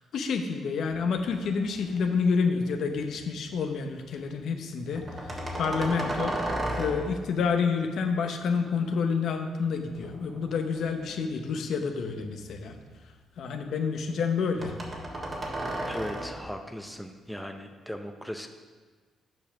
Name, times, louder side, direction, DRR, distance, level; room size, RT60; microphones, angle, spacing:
voice 1, 0.0-6.3 6.8-12.8 13.4-14.7, left 5 dB, 70° left, 5 dB, 0.8 m, -29 dB
sound 1, 0.9-2.2 2.7-3.3 5.0-7.3 9.8-11.4 11.9-13.1 14.6-16.5, right 1 dB, 30° right, 1.6 m, -35 dB
voice 2, 15.9-18.5, equal, ahead, 5 dB, 0.7 m, -38 dB
7.7 x 5.0 x 5.9 m, 1.4 s
cardioid pair, 90°, 0 cm